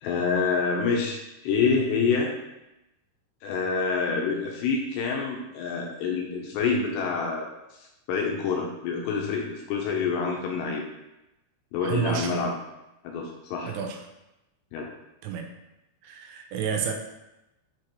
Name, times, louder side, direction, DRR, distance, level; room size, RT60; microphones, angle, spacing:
voice 1, 0.0-2.3 3.4-7.5 8.1-10.8 11.7-12.5 13.0-13.7 14.7-14.9, left 5 dB, 80° left, 0 dB, 2.7 m, -27 dB
voice 2, 11.8-12.5 13.7-14.0 15.2-15.5 16.0-16.9, right 7 dB, 90° right, 3 dB, 3.3 m, -30 dB
7.6 x 4.9 x 3.0 m, 0.94 s
omnidirectional pair, 5.4 m